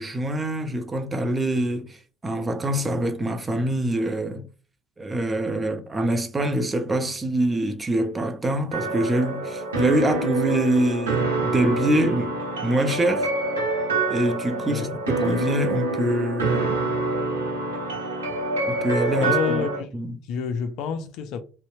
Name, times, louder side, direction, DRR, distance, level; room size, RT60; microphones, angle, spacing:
voice 1, 0.0-2.0 2.2-4.5 5.0-12.3 12.6-13.3 14.1-16.9 18.6-19.6 19.9-20.2, right 1 dB, 25° right, 0.6 m, -25 dB
sound 1, 8.7-19.8, right 2 dB, 90° right, 0.8 m, -26 dB
voice 2, 14.6-15.0 19.2-20.0 20.3-21.4, left 6 dB, 65° left, 0.4 m, -28 dB
2.7 x 2.1 x 2.5 m
hypercardioid pair, 55°, 0 cm